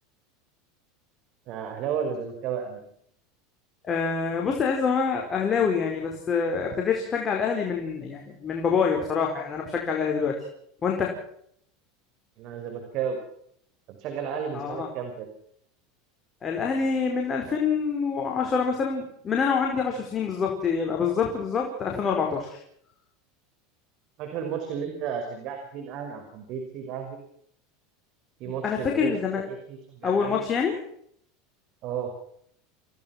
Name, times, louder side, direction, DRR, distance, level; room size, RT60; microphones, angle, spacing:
voice 1, 1.5-2.8 12.4-13.2 13.9-15.3 24.2-27.2 28.4-29.1 29.5-30.4 31.8-32.1, right 7 dB, 55° right, 5 dB, 5.6 m, -33 dB
voice 2, 3.8-10.3 10.8-11.2 14.5-14.9 16.4-22.6 28.4-29.4 30.0-30.8, left 6 dB, 30° left, 1 dB, 4.9 m, -26 dB
28.0 x 17.5 x 6.0 m, 0.68 s
supercardioid pair, 110°, 0 cm